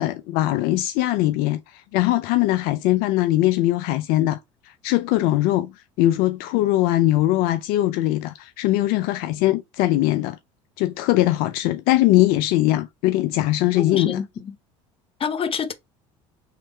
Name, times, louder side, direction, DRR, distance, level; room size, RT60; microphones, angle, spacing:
voice 1, 0.0-4.4 4.6-5.7 6.0-10.4 10.8-14.2, left 15 dB, 65° left, 0.4 m, -21 dB
voice 2, 13.8-14.5 15.2-15.7, left 7 dB, 35° left, 0.9 m, -27 dB
3.8 x 3.2 x 4.3 m
hypercardioid pair, 80°, 16 cm